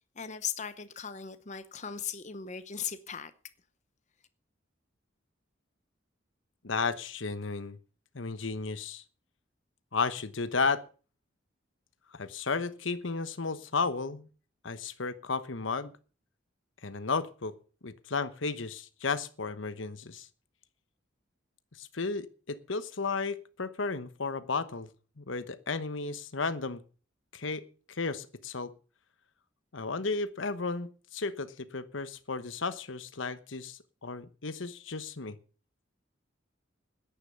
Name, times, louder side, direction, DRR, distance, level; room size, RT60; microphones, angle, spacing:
voice 1, 0.2-3.3, left 8 dB, 40° left, 0.8 m, -38 dB
voice 2, 6.6-7.8 8.1-9.0 9.9-10.8 12.1-14.3 14.6-15.9 16.8-17.5 17.8-20.3 21.8-24.9 25.2-26.8 27.3-28.7 29.7-35.4, left 4 dB, 80° left, 1.1 m, -33 dB
11.5 x 10.0 x 6.9 m
head